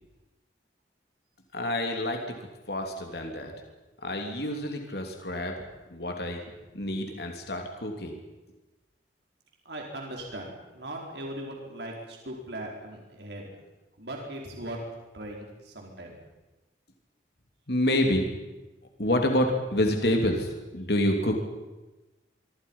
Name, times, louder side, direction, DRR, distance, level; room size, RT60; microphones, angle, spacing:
voice 1, 1.5-2.2 2.7-3.5 4.0-5.5 5.9-6.4 6.7-8.2 17.7-18.3 19.0-21.3, left 1 dB, 60° left, 3 dB, 3.2 m, -27 dB
voice 2, 9.6-13.5 14.0-14.8 15.1-16.2, right 1 dB, 70° right, 0 dB, 4.8 m, -39 dB
25.0 x 25.0 x 5.7 m, 1.1 s
head